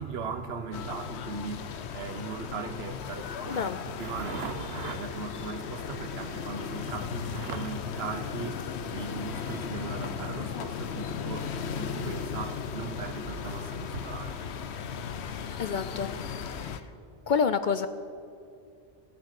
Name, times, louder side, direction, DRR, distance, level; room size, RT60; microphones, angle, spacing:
voice 1, 0.0-15.6, right 5 dB, 70° right, 1.1 m, -38 dB
sound 1, 0.7-16.8, left 7 dB, 85° left, 1.0 m, -36 dB
voice 2, 15.6-16.1 16.5-16.8 17.3-17.9, left 6 dB, 55° left, 0.6 m, -28 dB
16.5 x 10.5 x 6.5 m
omnidirectional pair, 1.1 m